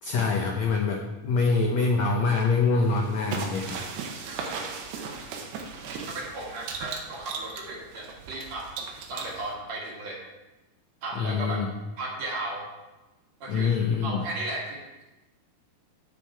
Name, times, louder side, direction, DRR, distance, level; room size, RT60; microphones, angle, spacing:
voice 1, 0.0-3.8 11.1-11.7 13.5-14.2, left 4 dB, 85° left, 1 dB, 1.5 m, -25 dB
sound 1, 2.8-9.5, right 5 dB, 90° right, 3.2 m, -37 dB
voice 2, 4.3-4.8 5.3-5.5 6.1-8.7 9.1-10.2 11.0-11.6 12.0-12.7 13.4-15.0, right 2 dB, 50° right, -3 dB, 2.7 m, -36 dB
9.7 x 9.3 x 4.7 m, 1.1 s
omnidirectional pair, 4.5 m